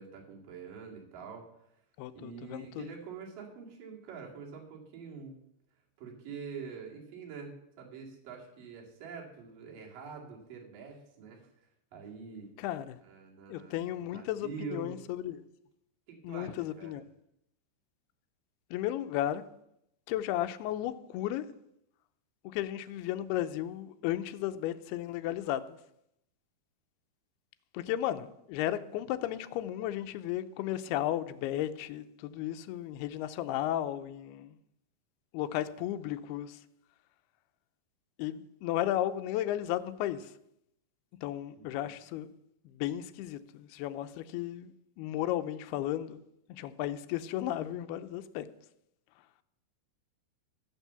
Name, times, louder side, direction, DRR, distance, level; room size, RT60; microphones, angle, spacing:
voice 1, 0.0-1.7 2.1-5.4 6.0-12.6 13.0-15.0 16.1-17.0 41.5-41.9, right 5 dB, 55° right, 3.8 m, -45 dB
voice 2, 2.0-2.9 12.6-13.0 13.5-15.5 16.2-17.0 18.7-19.4 20.1-21.5 22.4-25.8 27.7-34.6 35.3-36.6 38.2-40.3 41.2-42.3 42.7-46.2 46.5-48.5, left 12 dB, 80° left, 2.4 m, -34 dB
14.0 x 7.3 x 6.9 m
omnidirectional pair, 5.2 m